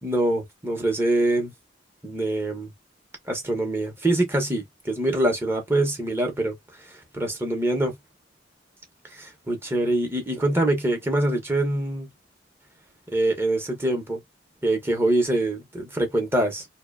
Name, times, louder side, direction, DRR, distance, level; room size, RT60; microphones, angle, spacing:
voice 1, 0.0-1.5 2.0-2.7 3.3-7.9 9.1-12.1 13.1-14.2 14.6-16.7, right 1 dB, 15° right, 0.7 m, -24 dB
2.6 x 2.1 x 2.3 m
head